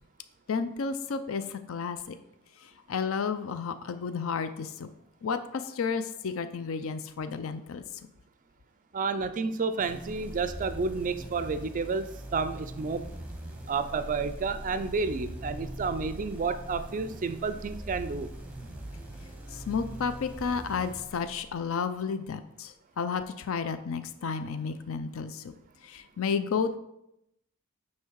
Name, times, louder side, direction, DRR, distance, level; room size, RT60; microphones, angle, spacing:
voice 1, 0.5-2.2 2.6-4.9 5.2-7.8 19.5-25.5 25.8-26.8, left 5 dB, 65° left, 11 dB, 0.5 m, -32 dB
voice 2, 8.9-13.1 13.7-18.3, right 4 dB, 35° right, 12 dB, 0.4 m, -31 dB
sound 1, 9.8-21.7, right 1 dB, 5° right, 0.9 m, -42 dB
9.2 x 3.2 x 4.6 m, 0.81 s
head